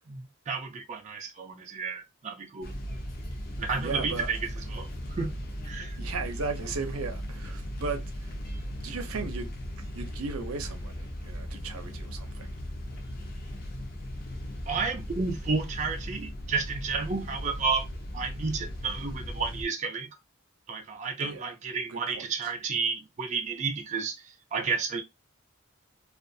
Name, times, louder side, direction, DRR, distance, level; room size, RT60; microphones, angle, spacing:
voice 1, 0.1-2.7 3.6-4.4 4.7-5.4 5.6-6.0 14.7-17.9 18.1-20.1 20.7-25.0, right 4 dB, 35° right, 0.4 m, -31 dB
sound 1, 2.6-19.6, equal, 45° left, 0.6 m, -37 dB
voice 2, 3.8-4.3 6.0-8.4 8.8-12.5 21.2-21.5 21.9-22.5, right 4 dB, 90° right, 0.6 m, -36 dB
2.4 x 2.4 x 2.6 m
head